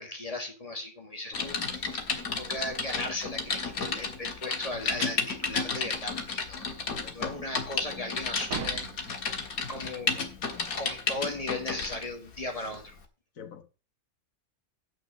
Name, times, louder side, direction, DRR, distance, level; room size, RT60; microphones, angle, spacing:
voice 1, 0.0-8.8 9.7-10.1 10.8-13.0, left 2 dB, 25° left, 2.1 m, -37 dB
Typing, 1.3-12.1 12.6-12.8, left 5 dB, 80° left, 2.0 m, -32 dB
voice 2, 1.3-1.7 7.0-7.4 10.1-10.8 13.3-13.6, left 8 dB, 65° left, 1.6 m, -47 dB
sound 1, 4.1-9.3, right 9 dB, 70° right, 1.3 m, -43 dB
7.6 x 6.3 x 7.4 m
omnidirectional pair, 1.5 m